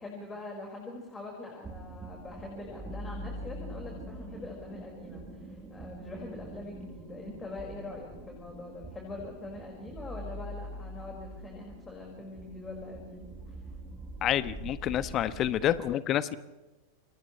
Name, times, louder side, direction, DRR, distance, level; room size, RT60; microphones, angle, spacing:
voice 1, 0.0-13.6, left 2 dB, 15° left, -1 dB, 5.4 m, -43 dB
sound 1, 1.6-15.8, right 1 dB, 10° right, 3.7 m, -44 dB
voice 2, 14.2-16.4, left 11 dB, 30° left, 14 dB, 1.2 m, -28 dB
29.0 x 28.0 x 3.3 m, 1.1 s
figure-of-eight pair, 90°, 0 cm